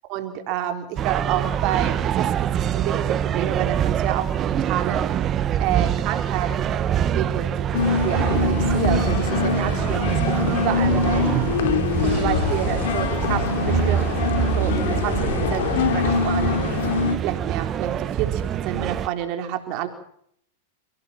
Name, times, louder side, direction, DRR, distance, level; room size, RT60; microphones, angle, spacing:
voice 1, 0.1-5.3 5.6-7.7 8.0-10.2 10.5-11.3 12.0-14.1 14.6-14.7 15.0-16.6 17.0-19.9, right 11 dB, 50° right, 6 dB, 4.1 m, -29 dB
sound 1, 1.0-19.1, right 9 dB, 30° right, 1.4 m, -24 dB
sound 2, 7.7-17.2, left 6 dB, 70° left, 3.8 m, -24 dB
29.0 x 17.5 x 7.4 m, 0.67 s
hypercardioid pair, 110°, 0 cm